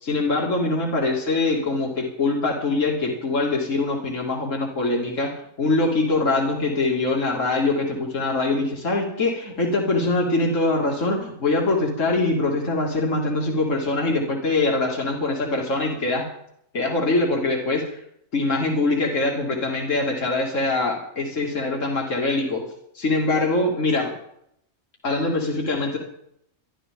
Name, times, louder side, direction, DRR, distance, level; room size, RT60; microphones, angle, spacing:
voice 1, 0.0-5.3 5.6-16.2 16.7-18.0 18.3-22.6 22.9-24.1 25.0-26.0, left 2 dB, 75° left, -1 dB, 2.9 m, -23 dB
24.5 x 12.0 x 3.7 m, 0.72 s
omnidirectional pair, 1.3 m